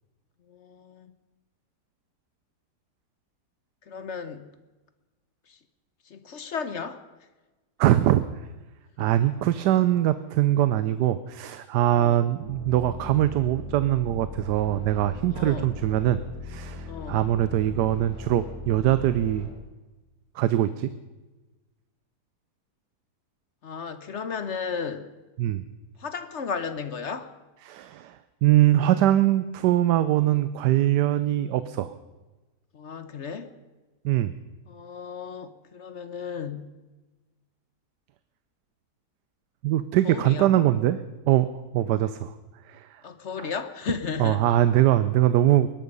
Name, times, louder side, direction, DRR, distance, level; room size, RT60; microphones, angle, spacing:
voice 1, 0.5-1.1 3.9-4.5 6.1-7.0 9.0-9.1 11.9-12.3 15.3-15.7 16.9-17.2 23.6-25.1 26.0-27.3 32.7-33.5 34.7-36.7 40.0-40.5 43.0-44.5, left 6 dB, 50° left, 11 dB, 1.1 m, -34 dB
voice 2, 7.8-8.2 9.0-16.2 16.5-19.5 20.4-20.9 25.4-25.6 27.6-31.9 34.0-34.3 39.6-41.0 41.3-41.5 41.7-42.3 42.7-42.9 43.4-43.5 44.2-45.7, right 13 dB, 80° right, 13 dB, 1.3 m, -22 dB
sound 1, 12.4-19.5, left 4 dB, 70° left, 5.4 m, -39 dB
21.0 x 12.0 x 5.4 m, 1.2 s
omnidirectional pair, 1.8 m